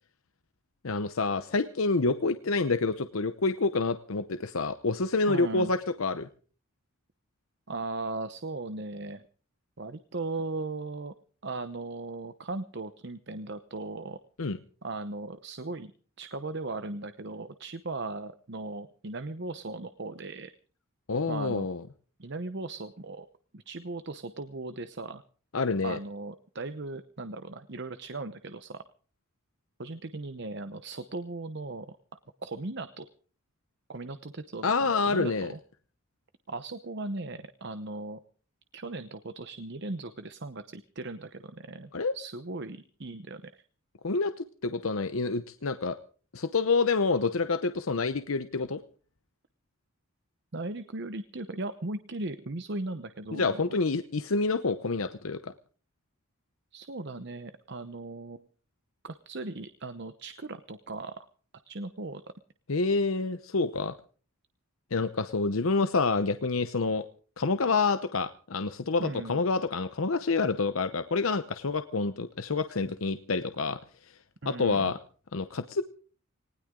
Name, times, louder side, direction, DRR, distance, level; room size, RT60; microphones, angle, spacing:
voice 1, 0.8-6.3 14.4-14.6 21.1-21.8 25.5-26.0 34.6-35.5 41.9-42.2 44.0-46.0 46.3-48.8 53.3-55.5 62.7-63.9 64.9-67.1 67.4-73.8 74.5-75.0 75.3-75.8, left 3 dB, 80° left, 10 dB, 0.8 m, -28 dB
voice 2, 5.3-5.7 7.7-9.2 9.8-11.1 11.4-14.2 14.8-15.9 16.2-20.5 21.3-21.7 22.2-23.3 23.5-25.2 25.8-28.8 29.8-32.0 32.4-33.1 33.9-35.6 36.5-38.2 38.7-43.6 50.5-53.6 56.7-58.5 59.0-61.1 61.7-62.2 69.0-69.4 74.4-74.9, right 2 dB, 55° right, 11 dB, 0.9 m, -38 dB
19.5 x 19.0 x 3.8 m, 0.41 s
head